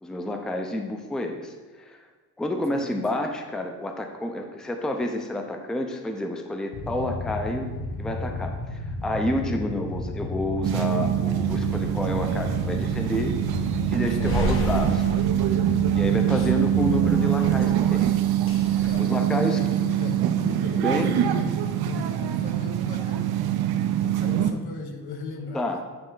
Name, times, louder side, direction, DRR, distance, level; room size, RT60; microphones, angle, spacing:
voice 1, 0.0-2.0 2.4-7.7 8.0-13.4 13.9-14.9 15.9-18.1 18.8-19.6 20.6-21.2 25.5-25.8, left 1 dB, ahead, 4 dB, 0.4 m, -29 dB
Motorcycle / Idling, 6.7-17.4, left 2 dB, 60° left, 1.3 m, -33 dB
sound 1, 10.6-24.5, right 11 dB, 70° right, 0.5 m, -24 dB
sound 2, 11.5-18.9, left 1 dB, 35° left, 0.7 m, -35 dB
voice 2, 14.2-15.0 16.2-16.9 18.9-21.5 21.8-23.3 23.7-25.8, left 3 dB, 80° left, 3 dB, 1.0 m, -37 dB
8.7 x 3.1 x 3.8 m, 1.3 s
cardioid pair, 100°, 38 cm